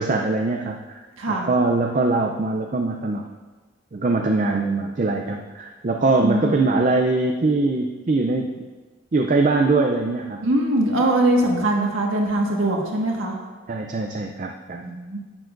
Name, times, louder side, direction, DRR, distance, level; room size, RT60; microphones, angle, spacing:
voice 1, 0.0-3.3 3.9-8.6 9.1-10.4 13.7-14.8, right 3 dB, 40° right, 3 dB, 0.4 m, -22 dB
voice 2, 1.2-1.5 6.2-6.6 10.4-13.4 14.8-15.2, right 1 dB, 80° right, -1 dB, 1.5 m, -22 dB
10.5 x 9.2 x 2.5 m, 1.4 s
head